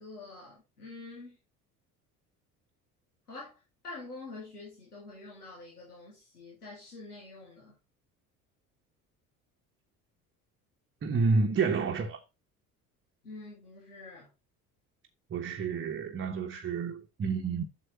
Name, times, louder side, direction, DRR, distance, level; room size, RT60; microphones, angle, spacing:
voice 1, 0.0-1.4 3.3-7.8 13.2-14.3, left 3 dB, 80° left, 3.0 m, -46 dB
voice 2, 11.0-12.2 15.3-17.6, right 4 dB, 25° right, 1.2 m, -29 dB
8.1 x 6.7 x 4.1 m
figure-of-eight pair, 60°, 45 cm